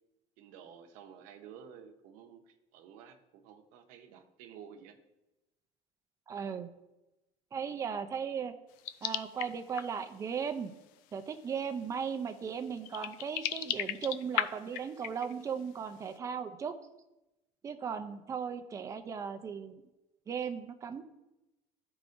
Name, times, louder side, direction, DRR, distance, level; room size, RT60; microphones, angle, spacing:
voice 1, 0.4-5.0, right 8 dB, 75° right, 6 dB, 0.9 m, -52 dB
voice 2, 6.3-6.7 7.5-8.5 9.0-10.7 11.1-16.7 17.6-19.8 20.3-21.0, right 7 dB, 25° right, 9 dB, 0.5 m, -37 dB
sound 1, 8.8-10.1 11.1-11.2 11.8-11.9 12.7-15.6, left 12 dB, 90° left, 0.4 m, -36 dB
13.5 x 4.8 x 2.6 m, 0.98 s
cardioid pair, 170°, 14 cm